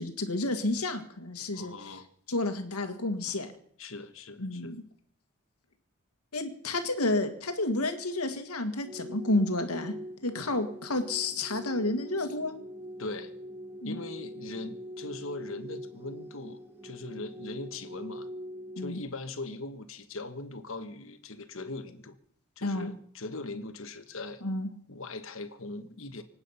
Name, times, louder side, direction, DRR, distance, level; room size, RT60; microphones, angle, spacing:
voice 1, 0.0-2.0 2.3-3.5 4.4-4.8 6.3-9.9 10.2-12.5 13.8-14.0 18.8-19.0 22.6-22.9 24.4-24.7, left 2 dB, 85° left, 7 dB, 1.8 m, -30 dB
voice 2, 1.5-2.1 3.8-4.8 13.0-13.3 13.8-18.3 18.8-22.2 22.6-24.4 24.9-26.2, left 2 dB, 65° left, 9 dB, 1.5 m, -40 dB
sound 1, 8.8-19.0, equal, 10° right, 2.2 m, -43 dB
25.5 x 8.9 x 5.7 m, 0.63 s
head